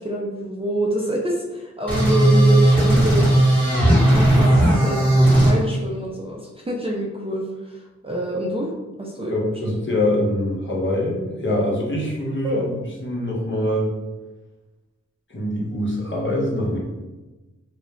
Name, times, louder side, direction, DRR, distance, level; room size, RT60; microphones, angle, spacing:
voice 1, 0.0-3.3 3.8-8.7 9.0-9.6 12.4-12.7, right 1 dB, 20° right, -2 dB, 0.4 m, -26 dB
sound 1, 1.9-5.5, right 1 dB, 5° left, 1.1 m, -16 dB
voice 2, 9.3-13.9 15.3-16.8, left 1 dB, 40° left, -3 dB, 0.9 m, -24 dB
2.4 x 2.0 x 3.2 m, 1.1 s
cardioid pair, 40°, 29 cm